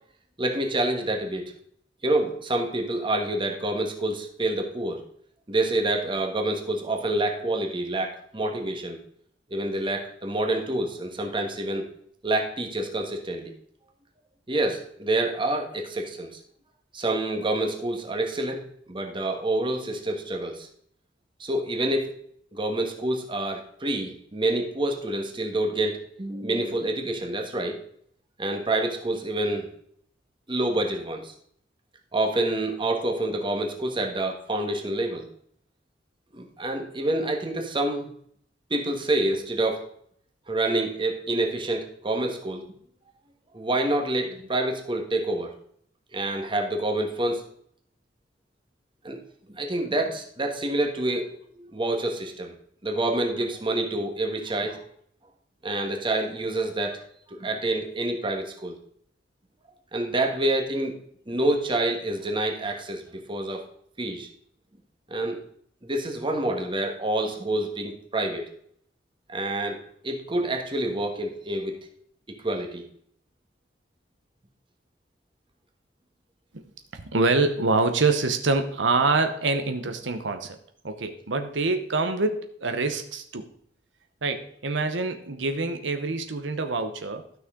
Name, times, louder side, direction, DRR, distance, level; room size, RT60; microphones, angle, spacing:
voice 1, 0.4-1.4 2.0-5.0 5.5-9.0 9.5-11.8 12.2-13.5 14.5-16.4 16.9-18.6 18.9-20.7 21.4-22.2 22.5-27.8 28.4-29.7 30.5-31.3 32.1-35.3 36.3-38.1 38.7-39.8 40.5-42.6 43.5-45.5 46.1-47.5 49.0-49.2 49.5-51.3 51.5-52.5 52.8-54.8 55.6-57.0 57.3-58.8 59.9-61.0 61.3-63.6 64.0-64.3 65.1-65.4 65.8-68.4 69.3-69.8 70.0-71.8 72.4-72.8, right 1 dB, 25° right, 3 dB, 1.4 m, -27 dB
voice 2, 76.9-80.6 80.8-83.4 84.2-87.2, right 3 dB, 90° right, 7 dB, 0.9 m, -25 dB
12.5 x 6.2 x 3.7 m, 0.65 s
head